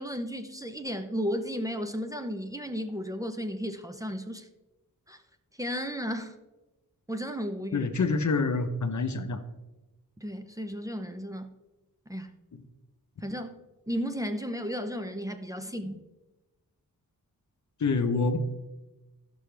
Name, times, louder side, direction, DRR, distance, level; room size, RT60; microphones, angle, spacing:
voice 1, 0.0-4.5 5.1-5.2 5.6-6.4 7.1-7.9 10.2-11.5 12.1-12.3 13.2-13.6 13.9-16.0, equal, 10° right, 7 dB, 0.7 m, -34 dB
voice 2, 7.7-9.4 17.8-18.4, left 4 dB, 55° left, 8 dB, 0.9 m, -26 dB
14.5 x 6.1 x 3.4 m, 1.1 s
wide cardioid pair, 80°, 34 cm